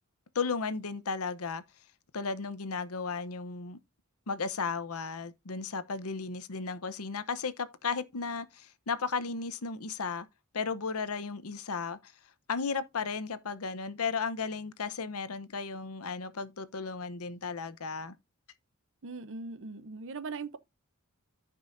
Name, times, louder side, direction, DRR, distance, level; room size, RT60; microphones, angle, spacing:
voice 1, 0.3-1.6 2.1-3.8 4.3-10.3 10.5-12.1 12.5-18.1, left 5 dB, 80° left, 0.8 m, -35 dB
voice 2, 19.0-20.6, right 4 dB, 60° right, 0.7 m, -40 dB
14.5 x 5.5 x 2.6 m
head